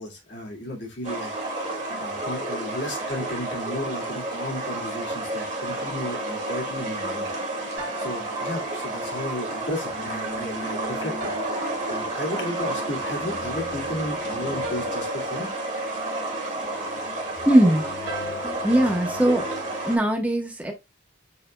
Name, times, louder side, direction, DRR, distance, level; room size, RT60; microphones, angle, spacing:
voice 1, 0.0-1.5 2.0-7.3 8.0-11.4 11.9-15.5, left 1 dB, 60° left, 2.0 m, -33 dB
sound 1, 1.0-20.0, right 2 dB, 40° right, 1.5 m, -31 dB
sound 2, 7.8-20.0, equal, 80° right, 2.1 m, -38 dB
voice 2, 17.5-17.9 18.4-19.4 19.9-20.7, right 1 dB, 10° right, 0.9 m, -20 dB
6.8 x 3.3 x 2.2 m
head